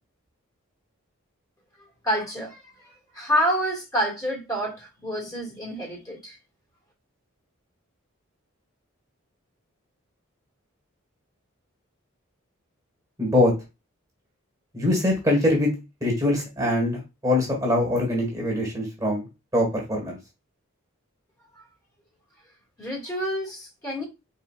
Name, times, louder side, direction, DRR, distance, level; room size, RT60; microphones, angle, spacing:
voice 1, 2.0-6.4 21.5-21.6 22.8-24.0, equal, 15° left, 2.0 m, -28 dB
voice 2, 13.2-13.5 14.7-15.7 16.0-19.2 19.5-20.2, left 1 dB, 15° right, 1.6 m, -23 dB
4.5 x 4.5 x 2.4 m
head